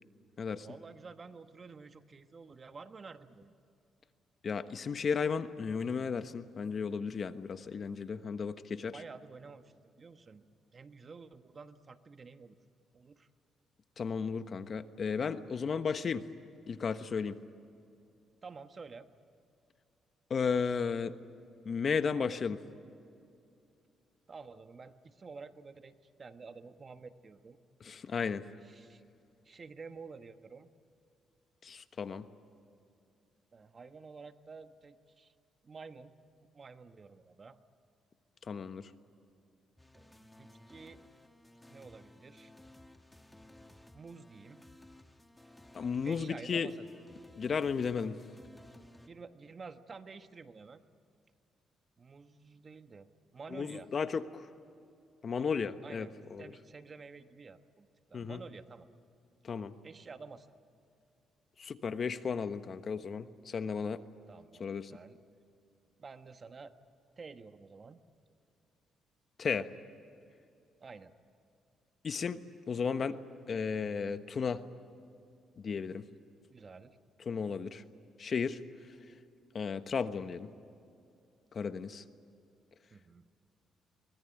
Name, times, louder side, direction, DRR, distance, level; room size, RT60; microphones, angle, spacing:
voice 1, 0.6-3.5 8.9-12.6 12.9-13.3 18.4-19.1 24.3-27.6 28.7-29.0 29.4-30.7 33.5-35.3 35.6-36.1 36.5-37.6 39.9-41.0 41.7-42.5 43.9-44.6 45.4-45.6 46.0-47.0 49.1-50.8 52.0-53.9 55.8-56.1 56.4-58.9 59.8-60.5 64.3-65.2 66.0-66.7 67.2-68.0 70.8-71.1 76.5-77.0 82.9-83.3, right 4 dB, 35° right, 9 dB, 1.3 m, -50 dB
voice 2, 4.4-9.0 14.0-16.2 16.7-17.4 20.3-21.1 21.6-22.6 27.8-28.4 31.6-32.2 38.4-38.9 45.7-46.7 47.4-48.2 53.5-54.5 55.2-56.5 58.1-58.4 59.4-59.7 61.6-64.0 64.6-64.9 69.4-69.7 72.0-72.4 72.7-73.2 73.5-74.6 75.6-76.0 77.2-77.8 78.2-78.9 79.5-80.5 81.5-82.0, left 6 dB, 45° left, 11 dB, 1.2 m, -34 dB
sound 1, 39.8-49.1, left 1 dB, 10° left, 1.6 m, -57 dB
24.0 x 20.0 x 10.0 m, 2.6 s
cardioid pair, 90°, 0 cm